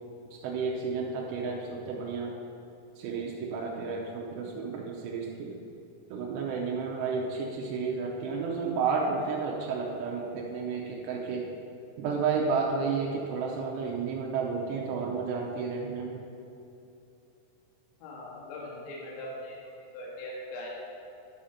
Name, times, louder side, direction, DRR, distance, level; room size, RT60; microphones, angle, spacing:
voice 1, 0.3-2.3 3.0-5.6 6.1-11.5 12.0-16.2, right 5 dB, 90° right, -2 dB, 2.4 m, -31 dB
voice 2, 18.0-19.6 19.9-20.7, left 1 dB, 65° left, -4 dB, 3.6 m, -40 dB
11.5 x 5.1 x 5.7 m, 2.7 s
omnidirectional pair, 5.9 m